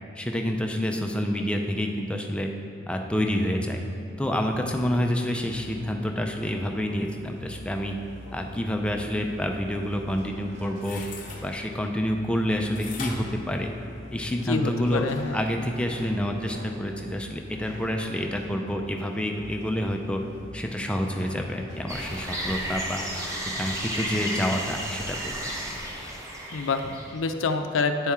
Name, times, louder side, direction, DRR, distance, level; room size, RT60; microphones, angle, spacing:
voice 1, 0.2-2.5 2.9-3.8 4.2-8.0 8.3-11.0 11.4-13.7 14.1-20.2 20.5-23.1 23.6-25.3, equal, 5° left, 3 dB, 0.4 m, -28 dB
sound 1, 4.4-22.7, equal, 40° right, 1.2 m, -45 dB
sound 2, 10.7-11.4 12.8-14.3 14.8-14.9, left 4 dB, 45° left, 0.7 m, -40 dB
voice 2, 14.5-15.4 26.5-28.1, left 4 dB, 85° left, 7 dB, 0.5 m, -27 dB
sound 3, 21.9-27.2, equal, 15° right, 0.7 m, -33 dB
9.6 x 4.3 x 3.5 m, 2.7 s
head